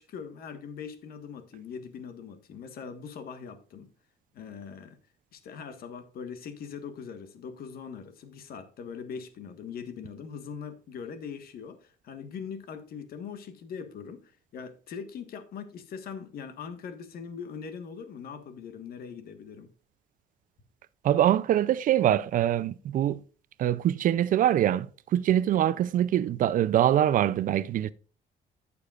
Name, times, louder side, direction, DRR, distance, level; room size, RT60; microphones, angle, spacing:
voice 1, 0.0-3.9 4.3-5.0 5.3-19.7, left 6 dB, 60° left, 1.5 m, -41 dB
voice 2, 21.0-23.2 23.6-27.9, right 11 dB, 55° right, 0.5 m, -24 dB
14.5 x 6.8 x 2.4 m
cardioid pair, 110°, 17 cm